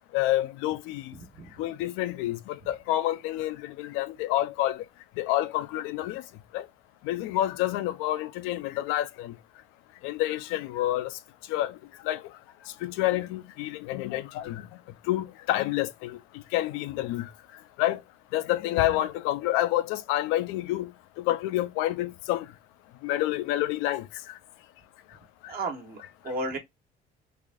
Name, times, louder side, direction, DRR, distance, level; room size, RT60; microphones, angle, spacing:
voice 1, 0.1-1.1 1.6-4.8 5.2-6.2 6.5-6.6 7.0-9.3 10.0-11.2 11.5-11.8 12.0-12.2 12.8-14.6 15.0-17.3 17.8-18.0 18.3-20.9 21.2-22.5 23.0-24.1, left 15 dB, 85° left, 0.5 m, -28 dB
voice 2, 25.5-26.6, right 2 dB, 50° right, 1.3 m, -33 dB
3.4 x 2.5 x 3.6 m
cardioid pair, 95°, 20 cm